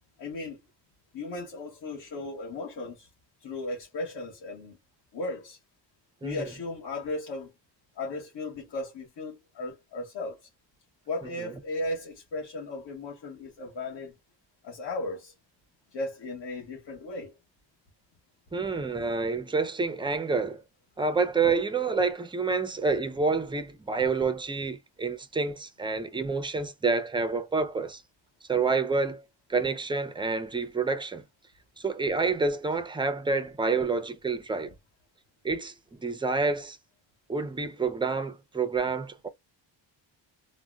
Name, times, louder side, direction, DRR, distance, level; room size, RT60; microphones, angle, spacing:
voice 1, 0.2-0.6 1.1-3.1 3.4-4.8 5.1-5.6 6.2-7.5 8.0-10.5 11.1-14.1 14.6-15.3 15.9-17.4, left 2 dB, 65° left, 1.2 m, -36 dB
voice 2, 18.5-20.6 21.0-28.0 28.5-29.2 29.5-31.2 31.8-34.7 35.4-36.8 37.3-39.3, right 4 dB, 10° right, 0.3 m, -28 dB
3.5 x 2.1 x 2.2 m
cardioid pair, 120°, 45 cm